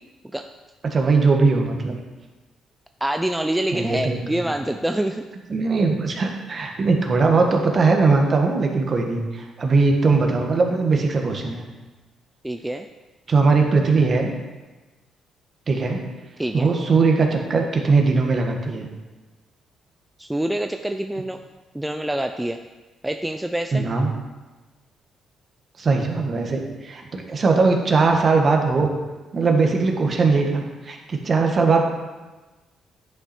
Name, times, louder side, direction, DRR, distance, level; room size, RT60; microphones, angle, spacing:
voice 1, 0.8-1.9 3.7-4.5 5.5-11.6 13.3-14.3 15.7-16.0 16.5-18.9 23.7-24.1 25.8-28.9 29.3-31.8, right 4 dB, 40° right, 3 dB, 1.5 m, -20 dB
voice 2, 3.0-5.2 12.4-12.9 16.4-16.7 20.2-21.4 21.7-22.6 23.0-23.9, right 1 dB, 10° right, 6 dB, 0.4 m, -26 dB
10.5 x 5.9 x 4.4 m, 1.2 s
cardioid pair, 90°, 0 cm